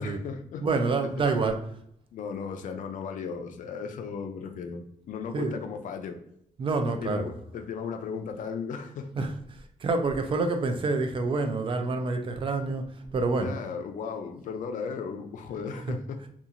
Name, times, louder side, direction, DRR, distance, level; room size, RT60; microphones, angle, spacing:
voice 1, 0.0-0.6 1.2-1.4 2.1-6.2 6.8-9.1 13.3-16.2, left 6 dB, 65° left, 6 dB, 0.4 m, -36 dB
voice 2, 0.6-1.6 5.3-5.6 6.6-7.3 9.2-9.3 9.8-13.5 15.9-16.0, right 3 dB, 40° right, 6 dB, 0.3 m, -27 dB
2.8 x 2.3 x 2.5 m, 0.71 s
wide cardioid pair, 135°, 14 cm